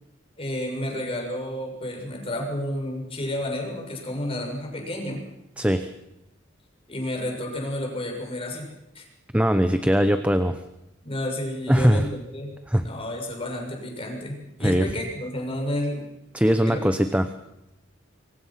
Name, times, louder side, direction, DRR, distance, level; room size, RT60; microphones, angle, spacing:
voice 1, 0.4-5.2 6.9-8.7 9.0-9.1 11.0-16.0 16.7-16.8, left 1 dB, 30° left, 1 dB, 6.8 m, -31 dB
voice 2, 9.3-10.6 11.7-12.1 12.7-12.9 14.6-14.9 16.3-17.3, equal, 5° right, 9 dB, 0.8 m, -20 dB
26.5 x 23.5 x 5.9 m, 0.88 s
head